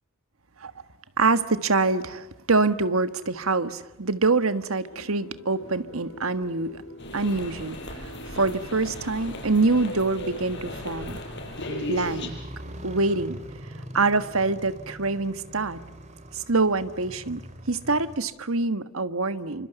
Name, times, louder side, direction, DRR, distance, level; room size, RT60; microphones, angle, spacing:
voice 1, 1.2-6.8 7.1-11.2 11.7-12.4 12.8-13.4 13.9-15.8 16.3-17.4 17.7-19.7, right 3 dB, 80° right, 11 dB, 1.5 m, -25 dB
sound 1, 4.9-12.6 12.9-13.0, right 1 dB, 90° left, 4.7 m, -48 dB
Motorcycle, 5.6-18.2, equal, 35° right, 3.0 m, -44 dB
sound 2, 7.0-12.3, left 1 dB, 55° left, 6.0 m, -36 dB
28.5 x 25.0 x 8.2 m, 1.0 s
head